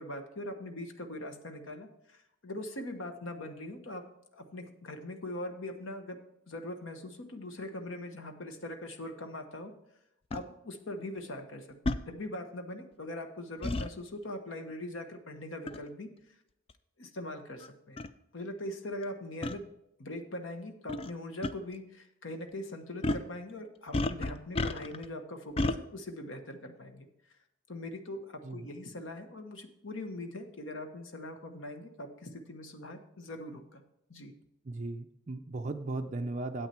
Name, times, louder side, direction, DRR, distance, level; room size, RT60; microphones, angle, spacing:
voice 1, 0.0-4.0 4.3-6.2 6.5-9.7 10.3-11.8 12.1-16.1 17.0-18.0 18.3-19.6 20.0-27.1 27.7-33.8 34.1-34.3, left 1 dB, 65° left, 6 dB, 1.1 m, -41 dB
sound 1, 10.3-10.4 11.9-12.0 13.6-13.9 15.7-15.9 16.7-16.8 17.6-17.7 18.0-18.1 19.4-19.6 20.9-21.1 21.4-21.5 23.0-23.3 23.9-25.1 25.6-25.8, left 2 dB, 25° left, 0.3 m, -31 dB
voice 2, 34.7-36.7, right 2 dB, 35° right, 3 dB, 0.5 m, -36 dB
9.3 x 8.1 x 4.4 m, 0.82 s
head